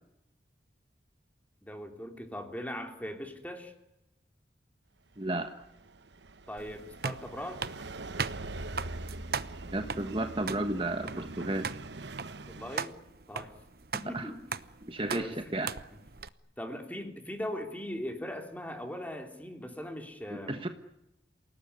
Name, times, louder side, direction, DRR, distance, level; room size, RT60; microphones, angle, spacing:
voice 1, 1.6-3.7 6.5-7.6 12.5-13.0 13.3-13.5 13.9-14.4 15.1-15.6 16.6-20.6, left 1 dB, 10° left, 4 dB, 3.3 m, -39 dB
voice 2, 5.2-5.5 9.7-11.7 14.0-14.3 14.8-15.7 20.3-20.7, right 2 dB, 30° right, 7 dB, 1.3 m, -33 dB
sound 1, 5.2-12.8, right 2 dB, 80° right, 1.1 m, -43 dB
sound 2, 6.6-16.3, right 5 dB, 55° right, 0.9 m, -39 dB
28.5 x 18.5 x 9.8 m, 0.87 s
head